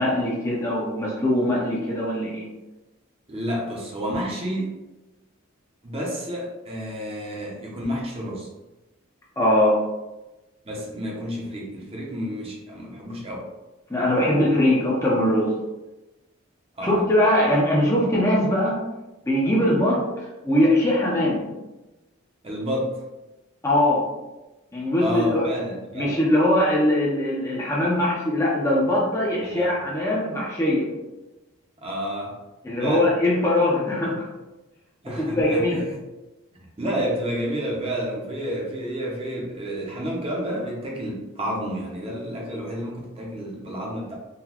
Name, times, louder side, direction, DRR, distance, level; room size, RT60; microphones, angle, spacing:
voice 1, 0.0-2.5 9.4-9.8 13.9-15.5 16.8-18.8 19.2-21.5 23.6-24.1 24.7-25.5 25.9-30.9 32.6-34.3 35.1-35.8, left 1 dB, 15° left, -4 dB, 0.5 m, -21 dB
voice 2, 3.3-4.7 5.8-8.5 10.6-13.5 16.8-17.0 22.4-23.0 25.0-26.2 29.5-29.7 31.8-32.4 32.8-33.1 35.0-35.8 36.5-44.1, equal, 30° right, -2 dB, 0.6 m, -30 dB
3.8 x 2.2 x 2.9 m, 1.1 s
head